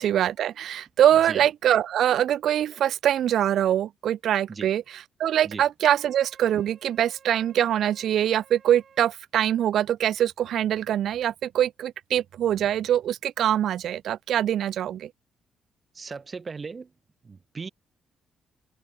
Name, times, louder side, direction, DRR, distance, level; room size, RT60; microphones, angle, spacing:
voice 1, 0.0-15.1, right 11 dB, 70° right, 0.5 m, -23 dB
Wind instrument woodwind instrument, 5.8-9.2, right 7 dB, 50° right, 5.5 m, -55 dB
voice 2, 15.9-16.9 17.2-17.7, right 4 dB, 35° right, 1.3 m, -37 dB
open air
cardioid pair, 90°, 0 cm